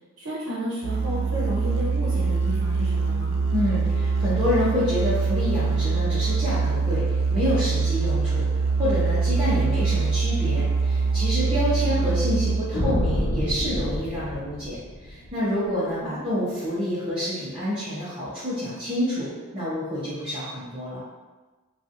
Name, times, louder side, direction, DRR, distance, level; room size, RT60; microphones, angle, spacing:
voice 1, 0.2-3.4 11.9-12.2 16.1-16.2, equal, 85° right, -8 dB, 0.8 m, -32 dB
Musical instrument, 0.8-12.9, right 4 dB, 65° right, 0.3 m, -24 dB
voice 2, 3.5-8.4 8.7-21.0, equal, 25° right, -13 dB, 0.7 m, -28 dB
sound 1, 12.7-15.3, equal, 85° left, 0.8 m, -27 dB
2.9 x 2.3 x 2.6 m, 1.3 s
head